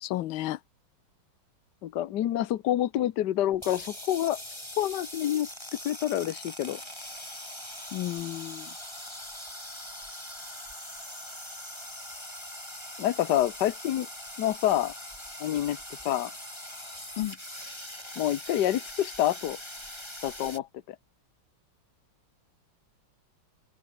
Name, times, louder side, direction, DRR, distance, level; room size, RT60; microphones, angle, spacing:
voice 1, 0.0-0.6 7.9-8.7 17.2-17.4, left 15 dB, 80° left, 1.5 m, -32 dB
voice 2, 1.8-4.4 4.8-5.5 5.8-6.8 13.0-14.1 14.4-14.9 15.4-15.8 16.0-16.3 18.2-19.6 20.2-21.0, left 12 dB, 60° left, 1.4 m, -27 dB
sound 1, 3.5-20.6, left 1 dB, 10° left, 5.3 m, -42 dB
omnidirectional pair, 2.2 m